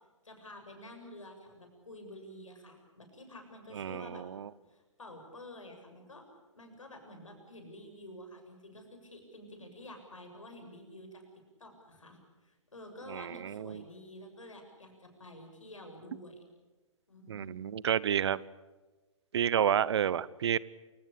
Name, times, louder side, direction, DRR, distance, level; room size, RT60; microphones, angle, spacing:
voice 1, 0.2-4.2 4.7-6.3 6.5-11.2 11.6-16.4 17.1-17.5, left 1 dB, 80° left, 5 dB, 7.3 m, -50 dB
voice 2, 3.8-4.5 13.1-13.8 17.3-18.4 19.3-20.6, right 9 dB, 55° right, 21 dB, 0.8 m, -30 dB
28.0 x 18.0 x 8.5 m, 1.2 s
figure-of-eight pair, 125°, 16 cm